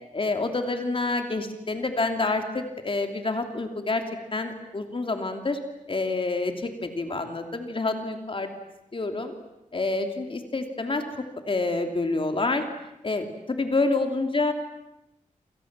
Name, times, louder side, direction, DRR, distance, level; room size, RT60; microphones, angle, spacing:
voice 1, 0.1-4.0 4.3-5.6 5.9-8.5 8.9-9.3 9.7-11.0 11.4-12.6 13.0-14.5, left 3 dB, 40° left, 5 dB, 2.9 m, -27 dB
28.0 x 28.0 x 7.5 m, 0.87 s
wide cardioid pair, 140°, 14 cm